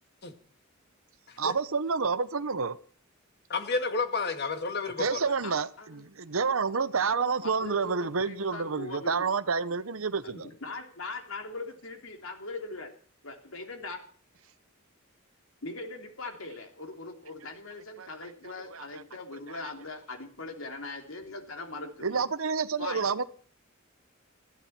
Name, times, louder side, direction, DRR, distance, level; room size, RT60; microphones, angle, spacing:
voice 1, 1.4-2.8 5.0-10.5 18.0-19.0 19.6-19.7 22.0-23.2, right 5 dB, 85° right, 0.9 m, -29 dB
voice 2, 3.5-5.2, left 4 dB, 50° left, 2.1 m, -30 dB
voice 3, 7.4-9.3 10.2-12.9 13.2-14.0 15.6-22.2 22.8-23.0, left 3 dB, 75° left, 3.1 m, -40 dB
20.5 x 14.5 x 4.4 m
head